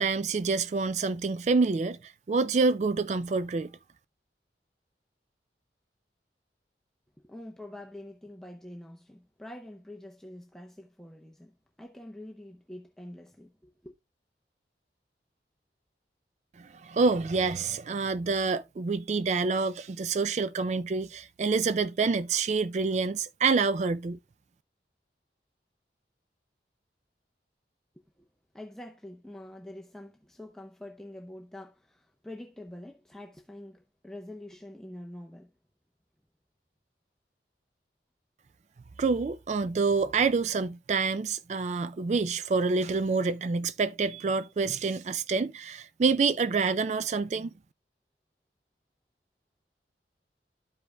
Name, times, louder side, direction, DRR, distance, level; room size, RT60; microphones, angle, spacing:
voice 1, 0.0-3.7 16.6-24.2 39.0-47.5, right 4 dB, 40° right, 0.3 m, -27 dB
voice 2, 7.2-13.9 28.2-28.3 28.5-35.5, left 1 dB, 5° left, 0.6 m, -46 dB
12.5 x 5.1 x 2.2 m
head